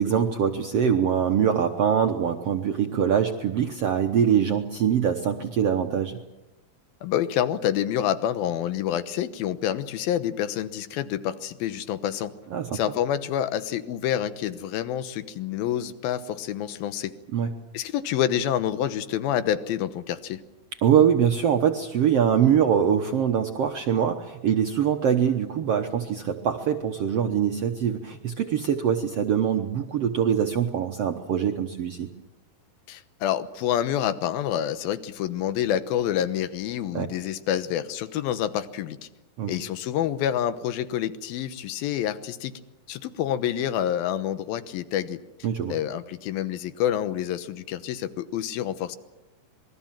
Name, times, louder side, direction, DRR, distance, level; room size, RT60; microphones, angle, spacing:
voice 1, 0.0-6.2 12.5-12.8 17.3-17.5 20.8-32.1 36.9-37.1 39.4-39.5 45.4-45.7, right 8 dB, 70° right, 4 dB, 1.5 m, -23 dB
voice 2, 7.0-12.3 12.7-17.1 17.7-20.4 32.9-39.1 39.5-42.6 42.9-45.2 45.7-49.0, left 10 dB, 80° left, 12 dB, 2.9 m, -27 dB
26.5 x 21.5 x 7.5 m, 1.0 s
omnidirectional pair, 4.2 m